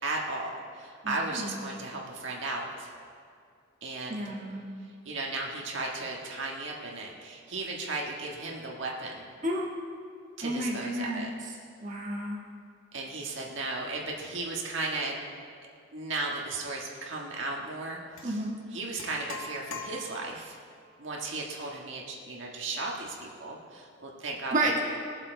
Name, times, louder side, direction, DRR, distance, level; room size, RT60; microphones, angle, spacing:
voice 1, 0.0-2.9 3.8-4.3 4.8-9.2 10.4-11.3 12.9-15.1 15.9-18.4 18.7-20.6 21.0-24.8, right 2 dB, 65° right, -2 dB, 1.6 m, -35 dB
voice 2, 1.0-1.5 4.1-4.6 9.4-9.7 10.4-11.3 11.8-12.4 18.2-18.6 24.5-24.8, right 1 dB, 40° right, -3 dB, 1.6 m, -31 dB
sound 1, 18.2-18.3 19.0-20.5, left 3 dB, 90° left, 1.3 m, -41 dB
20.5 x 7.5 x 4.5 m, 2.3 s
head